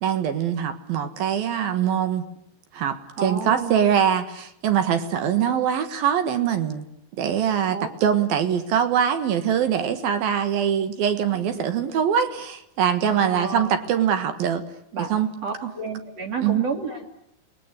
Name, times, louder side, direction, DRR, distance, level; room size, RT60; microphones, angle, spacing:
voice 1, 0.0-2.2 2.7-6.9 7.2-14.6 15.1-15.3 15.6-15.7 16.4-16.6, right 8 dB, 60° right, 9 dB, 2.9 m, -23 dB
voice 2, 3.2-3.9 7.7-7.9 11.5-11.6 13.1-13.8 14.9-15.1 15.4-17.1, right 5 dB, 40° right, 3 dB, 2.8 m, -30 dB
29.0 x 21.0 x 9.7 m, 0.78 s
omnidirectional pair, 5.3 m